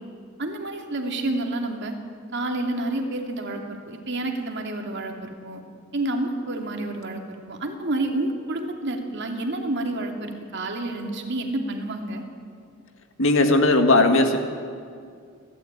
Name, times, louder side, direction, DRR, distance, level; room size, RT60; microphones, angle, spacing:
voice 1, 0.4-1.9 2.3-5.6 5.9-12.2, right 2 dB, 55° right, 3 dB, 2.7 m, -29 dB
voice 2, 13.2-14.4, left 2 dB, 65° left, 6 dB, 2.1 m, -17 dB
30.0 x 13.0 x 9.0 m, 2.3 s
head